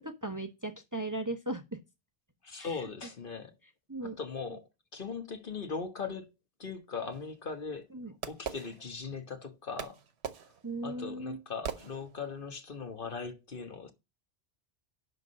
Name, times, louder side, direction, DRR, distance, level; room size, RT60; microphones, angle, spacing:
voice 1, 0.0-1.8 2.6-2.7 3.9-4.2 7.9-8.1 10.6-11.4, right 2 dB, 20° right, 0.8 m, -37 dB
voice 2, 2.4-3.5 4.0-6.3 6.6-7.9 8.3-10.0 10.4-10.5 10.8-13.9, left 5 dB, 55° left, 1.4 m, -39 dB
Fireworks, 7.1-9.3 9.8-12.5, right 7 dB, 90° right, 1.1 m, -42 dB
11.0 x 3.8 x 6.3 m
omnidirectional pair, 1.1 m